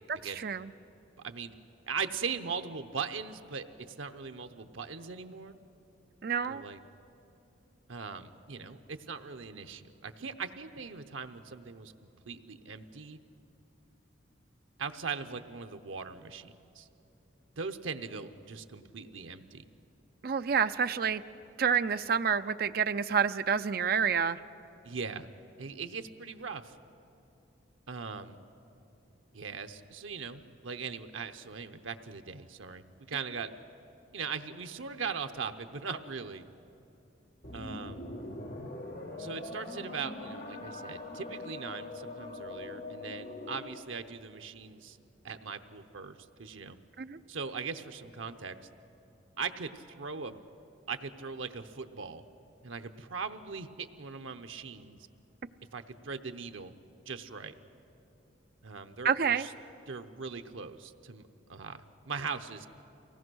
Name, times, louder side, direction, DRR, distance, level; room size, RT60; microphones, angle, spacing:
voice 1, 1.2-1.5 1.8-5.6 6.5-6.8 7.9-11.9 12.3-13.2 14.8-16.9 17.6-19.6 24.8-25.3 25.6-26.7 27.9-28.4 29.3-33.5 34.1-36.4 37.5-38.0 39.2-45.0 45.2-46.8 47.3-48.6 49.4-50.4 50.9-52.2 52.6-55.0 55.7-56.7 57.1-57.5 58.6-59.5 59.9-62.7, right 5 dB, 85° right, 8 dB, 0.8 m, -40 dB
voice 2, 6.2-6.6 20.2-21.2 21.6-24.4 47.0-47.2 59.0-59.5, right 6 dB, 50° right, 11 dB, 0.4 m, -28 dB
sound 1, 37.4-43.9, left 2 dB, 50° left, 1.4 m, -42 dB
23.5 x 17.5 x 6.3 m, 2.8 s
head